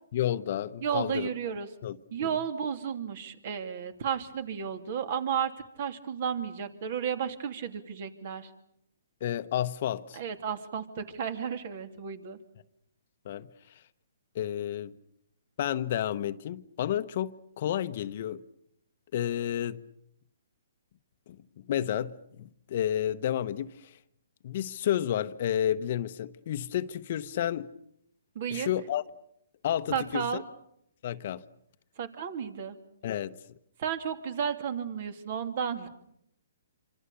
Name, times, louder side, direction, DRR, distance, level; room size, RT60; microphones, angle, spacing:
voice 1, 0.1-1.3 1.8-2.0 9.2-10.2 13.2-13.5 14.3-14.9 15.6-18.4 19.1-19.8 21.7-23.7 24.4-27.7 28.5-29.0 29.6-30.4 31.0-31.4 33.0-33.4, left 11 dB, 50° left, 1.0 m, -31 dB
voice 2, 0.8-1.7 2.1-5.5 5.8-8.5 10.1-12.4 28.3-28.7 29.9-30.4 32.0-32.8 33.8-35.9, right 7 dB, 50° right, 2.9 m, -33 dB
27.5 x 26.0 x 6.9 m
hypercardioid pair, 145°, 0 cm